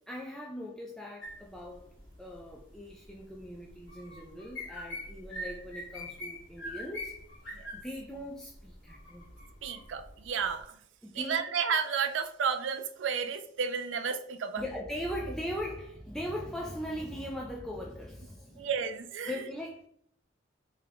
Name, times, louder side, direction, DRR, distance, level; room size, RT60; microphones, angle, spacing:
voice 1, 0.1-1.9 2.2-7.1 7.7-9.3 11.0-11.4 14.6-18.7 19.3-19.9, equal, 5° left, -2 dB, 0.3 m, -40 dB
sound 1, 1.2-10.6, left 1 dB, 65° left, 1.3 m, -44 dB
voice 2, 9.6-10.8 11.1-14.6 18.6-19.4, right 6 dB, 65° right, 9 dB, 0.4 m, -32 dB
3.6 x 3.3 x 3.4 m, 0.67 s
head